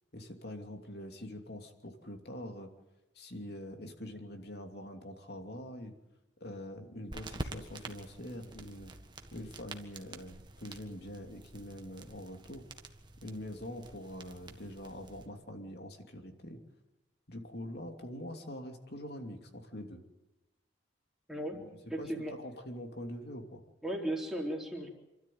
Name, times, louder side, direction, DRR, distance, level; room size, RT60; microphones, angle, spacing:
voice 1, 0.1-2.7 3.1-5.9 6.4-8.9 9.3-12.7 13.2-16.6 17.3-20.0 21.5-21.6 22.0-22.1 22.4-23.6, left 1 dB, 55° left, 4 dB, 2.9 m, -44 dB
sound 1, 7.1-15.3, right 2 dB, 25° right, 1.6 m, -48 dB
voice 2, 21.3-22.4 23.8-24.9, right 1 dB, ahead, -1 dB, 3.8 m, -36 dB
28.5 x 13.0 x 9.4 m, 1.0 s
head